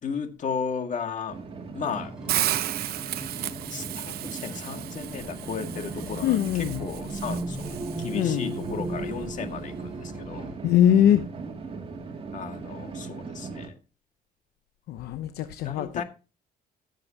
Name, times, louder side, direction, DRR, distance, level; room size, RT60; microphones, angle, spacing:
voice 1, 0.0-1.4 1.7-2.1 3.7-10.5 12.3-13.7 15.6-16.0, left 6 dB, 45° left, 2.0 m, -35 dB
sound 1, 1.3-13.7, right 4 dB, 35° right, 2.6 m, -39 dB
sound 2, 1.8-10.5, right 2 dB, 5° right, 6.1 m, -37 dB
Hiss, 2.3-8.4, right 13 dB, 65° right, 0.7 m, -33 dB
voice 2, 6.2-6.8 8.1-8.5 10.6-11.3 14.9-16.0, left 10 dB, 75° left, 0.8 m, -22 dB
16.0 x 7.6 x 2.9 m
cardioid pair, 110°, 17 cm